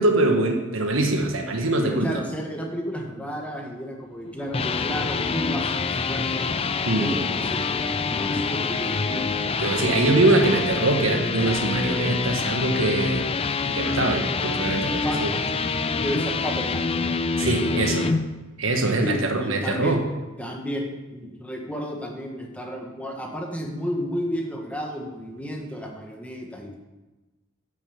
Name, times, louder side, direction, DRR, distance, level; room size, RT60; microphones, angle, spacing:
voice 1, 0.0-2.1 6.8-7.1 9.6-13.3 13.6-15.4 17.4-18.1 18.6-20.0, right 2 dB, 70° right, 4 dB, 1.5 m, -23 dB
voice 2, 1.8-6.5 7.0-9.3 15.0-15.2 15.9-17.1 19.0-20.0 20.4-20.8 21.1-26.7, equal, 5° left, 0 dB, 1.5 m, -32 dB
sound 1, 4.3-18.2, left 4 dB, 25° left, 0.4 m, -26 dB
9.7 x 7.0 x 7.1 m, 1.1 s
head